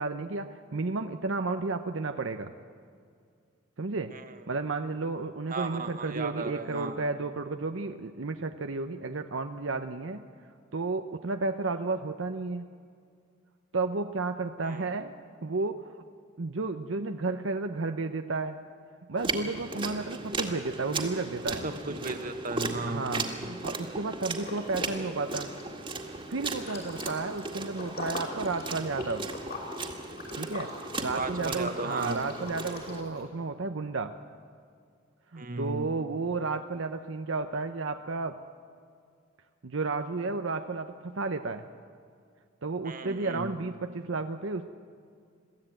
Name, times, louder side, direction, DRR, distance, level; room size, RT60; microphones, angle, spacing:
voice 1, 0.0-2.5 3.8-4.1 4.5-10.2 10.7-12.7 13.7-15.1 15.4-15.8 16.4-18.6 19.1-21.6 22.9-25.5 26.3-29.3 30.3-34.1 35.3-38.4 39.6-41.7 42.6-44.7, right 3 dB, 70° right, 6 dB, 0.8 m, -32 dB
voice 2, 4.1-4.4 5.5-7.0 14.6-15.1 21.6-23.4 31.1-32.3 35.4-36.0 42.8-43.5, right 3 dB, 45° right, 7 dB, 1.4 m, -36 dB
sound 1, 19.2-33.0, right 3 dB, 25° right, 2.0 m, -37 dB
Liquid, 24.3-25.0 25.3-33.2, left 2 dB, 50° left, 5.6 m, -42 dB
22.5 x 15.0 x 9.0 m, 2.2 s
head